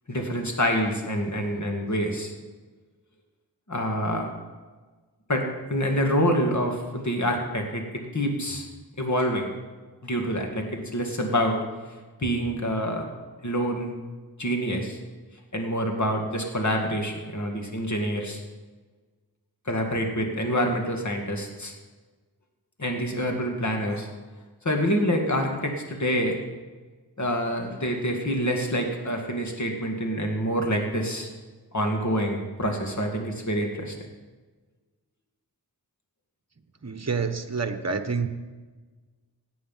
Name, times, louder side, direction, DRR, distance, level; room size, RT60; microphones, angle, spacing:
voice 1, 0.1-2.3 3.7-4.3 5.3-5.4 5.7-7.8 8.1-8.7 9.0-9.5 10.0-11.6 12.2-13.1 13.4-13.9 14.4-15.0 15.5-18.4 19.7-21.7 22.8-24.1 24.6-26.4 27.2-31.3 31.7-33.9, equal, 45° left, 2 dB, 2.3 m, -26 dB
voice 2, 36.8-38.3, right 5 dB, 40° right, 9 dB, 1.1 m, -28 dB
17.0 x 9.3 x 5.7 m, 1.3 s
wide cardioid pair, 55°, 40 cm